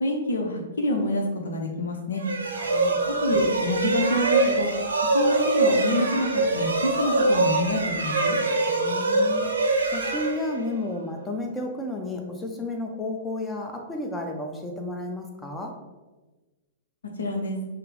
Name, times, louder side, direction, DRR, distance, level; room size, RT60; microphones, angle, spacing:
voice 1, 0.0-2.2 3.1-4.7 5.0-8.4 17.2-17.6, left 1 dB, 70° left, 2 dB, 0.6 m, -27 dB
sound 1, 2.2-10.9, right 2 dB, 75° right, 0.6 m, -24 dB
voice 2, 2.5-3.0 8.7-9.5 9.8-15.8, left 2 dB, 10° left, 2 dB, 0.7 m, -32 dB
5.5 x 2.0 x 3.7 m, 1.2 s
figure-of-eight pair, 105°, 0 cm